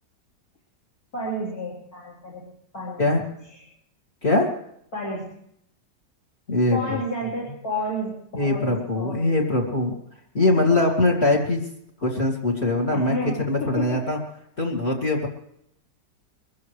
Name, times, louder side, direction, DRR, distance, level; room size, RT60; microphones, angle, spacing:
voice 1, 1.1-2.4 2.7-3.1 3.5-3.6 4.9-5.3 6.7-9.3 12.9-14.0, left 1 dB, 55° left, -5 dB, 4.5 m, -31 dB
voice 2, 6.5-7.0 8.3-10.0 10.3-11.6 12.0-13.2 13.5-14.2 14.6-15.3, left 2 dB, 35° left, 1 dB, 2.7 m, -22 dB
23.5 x 15.0 x 3.2 m, 0.73 s
omnidirectional pair, 1.9 m